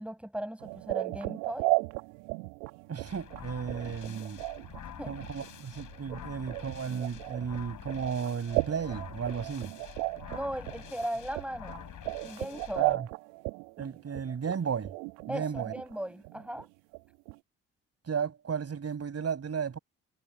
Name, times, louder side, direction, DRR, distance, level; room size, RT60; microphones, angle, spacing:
voice 1, 0.0-1.8 5.0-5.2 10.3-11.8 12.2-13.0 15.3-16.7, equal, 5° right, 7.1 m, -38 dB
sound 1, 0.6-16.0 16.2-16.6 16.9-17.0 17.3-17.4, right 25 dB, 75° right, 1.6 m, -35 dB
voice 2, 2.9-4.4 5.0-9.7 12.8-13.1 13.8-14.9 15.3-15.7 18.1-19.8, right 6 dB, 45° right, 5.6 m, -34 dB
sound 2, 3.1-12.9, left 10 dB, 60° left, 7.3 m, -47 dB
hypercardioid pair, 45°, 35 cm